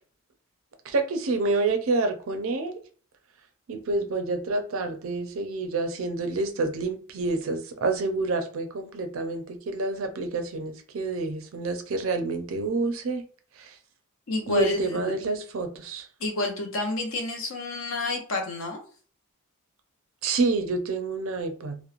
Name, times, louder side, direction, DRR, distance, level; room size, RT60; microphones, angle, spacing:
voice 1, 0.9-2.8 3.7-13.2 13.6-13.7 14.5-16.1 20.2-21.8, right 3 dB, 65° right, 0.4 m, -28 dB
voice 2, 14.3-15.1 16.2-18.8, left 2 dB, 65° left, 0.6 m, -29 dB
2.9 x 2.0 x 2.4 m
head